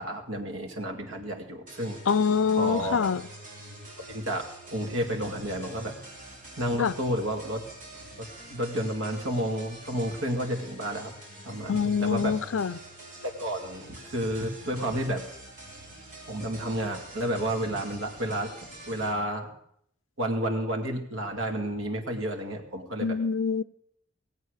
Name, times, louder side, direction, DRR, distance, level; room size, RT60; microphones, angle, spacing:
voice 1, 0.0-2.0 2.5-3.1 4.1-6.0 6.6-7.6 8.2-11.1 11.4-12.4 13.2-15.2 16.3-18.5 18.9-19.5 20.2-23.2, right 1 dB, 85° right, 2.3 m, -31 dB
sound 1, 1.7-19.1, right 1 dB, 40° right, 4.1 m, -46 dB
voice 2, 2.1-3.2 6.8-6.9 11.7-12.8 23.0-23.6, left 6 dB, 80° left, 0.5 m, -25 dB
18.5 x 8.3 x 6.6 m
head